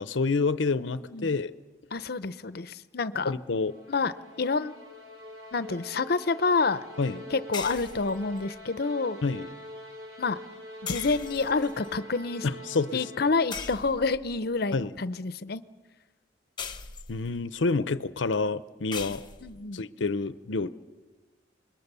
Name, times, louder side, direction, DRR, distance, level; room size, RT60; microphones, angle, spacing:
voice 1, 0.0-1.5 3.2-3.7 7.0-7.3 9.2-9.5 12.4-13.0 14.7-14.9 17.1-19.2 19.7-20.7, left 3 dB, 90° left, 14 dB, 0.7 m, -28 dB
voice 2, 0.9-1.3 1.9-3.3 3.9-4.1 4.4-4.7 5.5-6.8 7.3-9.2 10.2-10.4 10.8-12.5 12.9-15.6 19.4-19.8, left 4 dB, 55° left, 15 dB, 0.7 m, -28 dB
sound 1, 3.4-13.8, left 1 dB, 70° right, 5.7 m, -44 dB
sound 2, 7.5-8.6 10.9-11.9 13.5-14.4 16.6-17.4 18.9-19.6, left 6 dB, 25° left, 1.0 m, -39 dB
27.5 x 21.5 x 6.9 m, 1.3 s
head